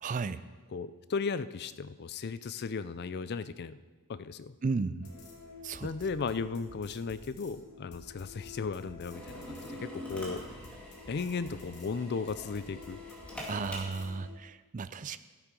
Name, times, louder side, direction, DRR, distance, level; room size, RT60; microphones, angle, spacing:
voice 1, 0.0-0.4 4.6-5.1 5.6-5.9 13.5-15.2, right 4 dB, 35° right, 13 dB, 0.4 m, -34 dB
voice 2, 0.7-3.8 4.1-4.6 5.8-10.4 11.1-13.0, left 5 dB, 50° left, 14 dB, 0.4 m, -36 dB
sound 1, 5.0-14.3, left 3 dB, 85° left, 2.1 m, -50 dB
Drill, 9.1-14.2, equal, 5° left, 2.1 m, -45 dB
13.0 x 8.3 x 5.3 m, 1.3 s
head